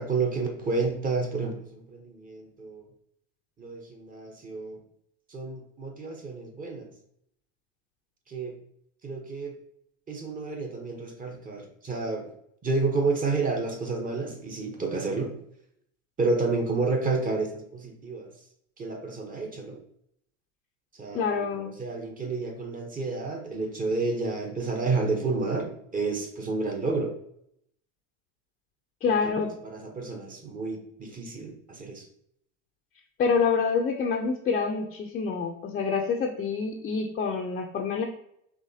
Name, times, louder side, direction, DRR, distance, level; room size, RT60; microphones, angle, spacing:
voice 1, 0.0-2.9 3.6-4.8 5.3-6.9 8.3-8.6 9.0-9.5 10.1-12.3 12.6-15.4 16.2-18.3 18.8-19.8 20.9-27.1 29.1-29.3 29.6-32.1, right 3 dB, 20° right, 2 dB, 0.9 m, -30 dB
voice 2, 21.1-21.7 29.0-29.5 33.2-38.0, left 5 dB, 25° left, 1 dB, 0.5 m, -27 dB
4.9 x 3.1 x 2.7 m, 0.72 s
hypercardioid pair, 100°, 38 cm